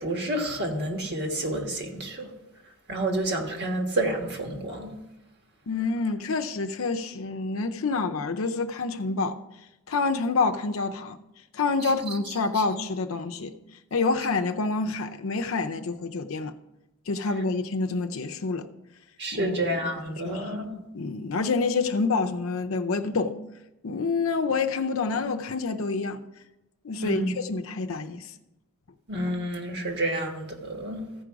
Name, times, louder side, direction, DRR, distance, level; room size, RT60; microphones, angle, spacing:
voice 1, 0.0-2.3 2.9-4.9 19.2-20.8 27.0-27.3 29.1-31.0, right 1 dB, 55° right, 1.5 m, -29 dB
voice 2, 5.7-9.4 9.9-11.2 11.5-13.5 13.9-16.5 17.1-18.7 19.3-19.6 20.2-20.5 20.9-23.3 23.8-26.2 26.8-28.3, left 4 dB, 70° left, 0.6 m, -27 dB
15.0 x 5.1 x 4.7 m
head